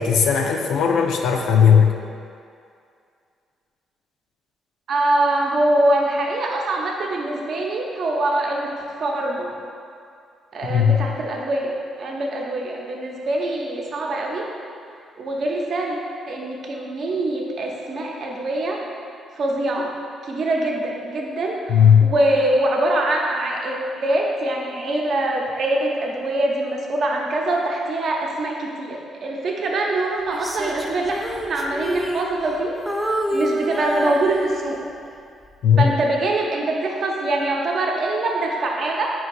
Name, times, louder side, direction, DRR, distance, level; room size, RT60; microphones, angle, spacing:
voice 1, 0.0-1.9 10.7-11.1 21.7-22.1 35.6-35.9, left 7 dB, 75° left, 3 dB, 0.4 m, -16 dB
voice 2, 4.9-8.7 9.0-9.5 10.5-14.4 15.2-16.0 16.3-18.8 19.4-19.9 20.2-21.7 22.0-31.2 31.5-32.8 33.3-34.8 35.8-39.1, right 2 dB, 60° right, -1 dB, 0.6 m, -23 dB
Female singing, 30.3-32.6 32.9-34.9 35.4-35.7, equal, ahead, 0.4 m, -28 dB
4.5 x 2.6 x 3.9 m, 2.4 s
cardioid pair, 90°, 0 cm